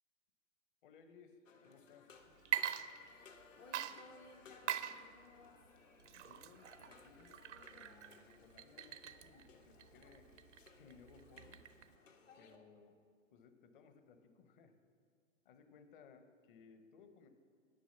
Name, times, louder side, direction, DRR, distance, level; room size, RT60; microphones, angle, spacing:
voice 1, 0.8-2.1 6.2-10.3 10.7-11.6 12.4-13.0 13.3-14.7 15.4-17.3, left 5 dB, 40° left, 8 dB, 1.0 m, -62 dB
sound 1, 1.5-12.6, left 5 dB, 70° left, 1.3 m, -63 dB
Water / Liquid, 2.4-3.4 3.7-12.0, right 10 dB, 60° right, 0.6 m, -44 dB
voice 2, 3.2-5.6, left 3 dB, 15° left, 2 dB, 0.4 m, -60 dB
10.0 x 6.3 x 7.0 m, 2.3 s
figure-of-eight pair, 110°, 39 cm